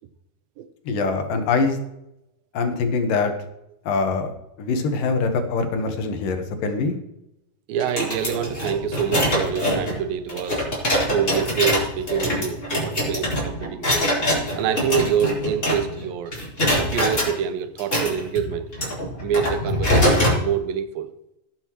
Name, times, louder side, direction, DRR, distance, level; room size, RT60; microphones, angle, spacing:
voice 1, 0.9-1.8 2.5-3.3 3.9-4.3 4.6-7.0, left 4 dB, 75° left, 2.9 m, -23 dB
voice 2, 7.7-10.7 11.1-14.0 14.6-16.4 16.9-18.7 19.2-21.1, right 8 dB, 90° right, 2.6 m, -26 dB
sound 1, 7.8-16.1 16.3-17.3 17.8-20.4, equal, 20° left, 4.2 m, -23 dB
18.0 x 7.8 x 3.1 m
omnidirectional pair, 4.0 m